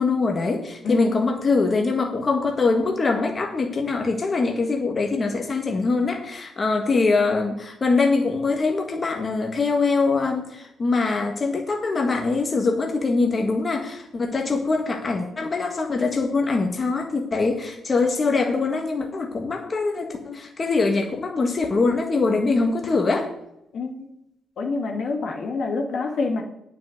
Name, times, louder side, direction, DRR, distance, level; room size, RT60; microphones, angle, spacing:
voice 1, 0.0-23.3, left 3 dB, 35° left, 2 dB, 1.8 m, -23 dB
voice 2, 0.8-1.3 23.7-24.0 24.6-26.4, left 3 dB, 60° left, 2 dB, 2.2 m, -26 dB
9.4 x 5.7 x 7.9 m, 0.81 s
cardioid pair, 90°, 0 cm